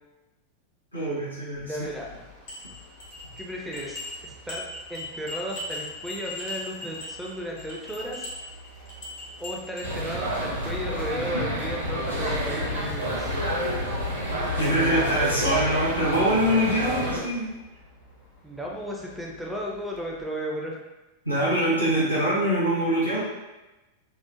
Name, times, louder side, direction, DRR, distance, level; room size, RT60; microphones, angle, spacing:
voice 1, 0.9-1.9 14.6-17.5 21.2-23.2, equal, 85° left, -8 dB, 0.8 m, -24 dB
sound 1, 1.6-20.3, left 5 dB, 40° left, 0.7 m, -43 dB
voice 2, 1.6-2.0 3.4-8.3 9.4-13.3 18.4-20.8, equal, 5° right, -2 dB, 0.4 m, -34 dB
sound 2, 2.0-10.1, left 2 dB, 60° left, 1.1 m, -39 dB
sound 3, 9.8-17.2, equal, 80° right, 0.7 m, -29 dB
2.9 x 2.0 x 2.4 m, 1.1 s
figure-of-eight pair, 90°, 0 cm